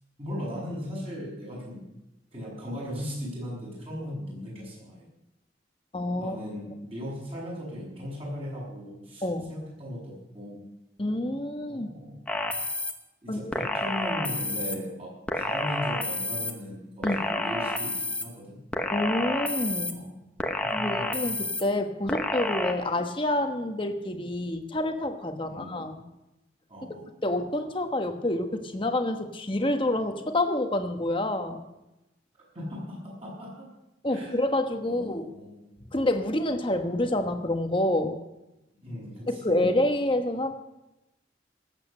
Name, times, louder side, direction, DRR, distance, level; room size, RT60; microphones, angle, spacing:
voice 1, 0.2-1.8 2.3-5.0 6.2-10.6 11.7-12.2 13.2-18.6 19.9-20.2 20.6-21.2 25.5-25.9 26.7-27.1 32.5-33.7 34.1-34.4 34.8-35.6 38.8-39.7, equal, 30° right, -4 dB, 6.7 m, -38 dB
voice 2, 5.9-6.4 9.2-9.5 11.0-11.9 13.3-13.4 17.0-17.3 18.9-20.0 20.7-26.0 27.2-31.6 34.0-35.3 35.9-38.2 39.3-40.5, left 1 dB, 25° left, 6 dB, 1.2 m, -28 dB
sound 1, 12.3-12.9 13.5-14.8 15.3-16.5 17.0-18.2 18.7-19.9 20.4-21.6 22.1-22.7, left 1 dB, 5° left, 1.0 m, -29 dB
18.5 x 8.3 x 6.6 m, 0.95 s
head